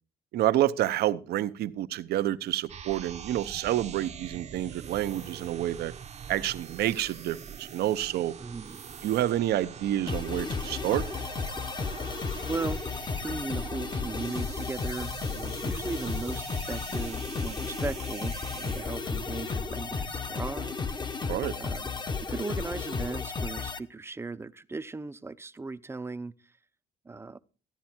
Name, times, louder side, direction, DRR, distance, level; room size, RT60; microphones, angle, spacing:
voice 1, 0.3-5.9 6.3-8.3 9.0-11.0 21.2-21.6, right 13 dB, 70° right, 0.9 m, -28 dB
sound 1, 2.7-20.5, right 7 dB, 40° right, 0.9 m, -44 dB
voice 2, 8.4-8.8 12.5-12.8 13.2-21.9 22.2-26.3 27.0-27.4, right 3 dB, 15° right, 0.7 m, -37 dB
sound 2, 10.1-23.8, left 4 dB, 25° left, 0.9 m, -33 dB
14.5 x 10.5 x 4.4 m
cardioid pair, 110°, 17 cm